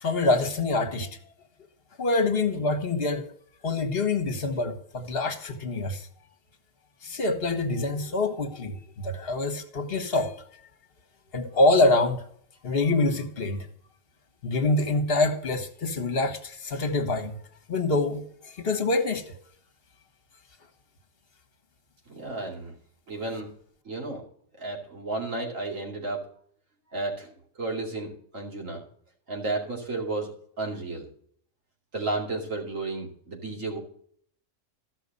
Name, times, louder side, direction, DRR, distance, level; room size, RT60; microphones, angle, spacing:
voice 1, 0.0-1.1 2.0-3.3 3.6-6.1 7.0-10.4 11.3-12.2 12.6-13.7 14.4-17.4 17.7-19.4, left 2 dB, 50° left, 8 dB, 1.5 m, -25 dB
voice 2, 22.1-22.7 23.1-23.5 23.8-24.2 24.6-26.2 26.9-28.8 29.3-30.3 30.6-31.1 31.9-33.8, right 2 dB, 85° right, 0 dB, 3.0 m, -32 dB
14.0 x 6.3 x 5.3 m, 0.62 s
omnidirectional pair, 1.3 m